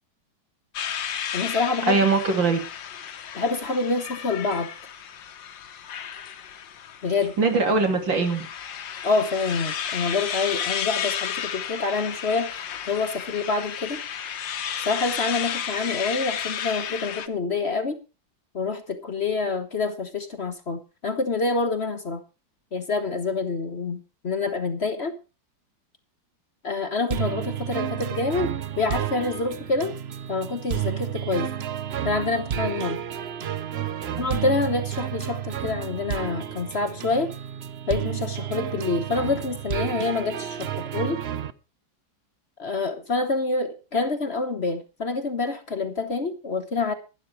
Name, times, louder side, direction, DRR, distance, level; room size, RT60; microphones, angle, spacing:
sound 1, 0.7-17.3, left 8 dB, 80° left, 1.8 m, -33 dB
voice 1, 1.3-2.0 3.3-4.7 7.0-7.3 9.0-14.0 14.8-18.0 18.5-22.2 22.7-25.1 26.6-28.5 28.8-30.0 30.3-31.5 32.0-33.0 34.2-37.3 37.9-41.2 42.6-46.9, left 3 dB, 40° left, 8 dB, 1.2 m, -27 dB
voice 2, 1.9-2.6 7.4-8.5 34.0-34.2, right 4 dB, 85° right, 4 dB, 3.6 m, -22 dB
sound 2, 27.1-41.5, right 9 dB, 55° right, 0.7 m, -31 dB
12.0 x 11.0 x 4.7 m, 0.32 s
omnidirectional pair, 2.0 m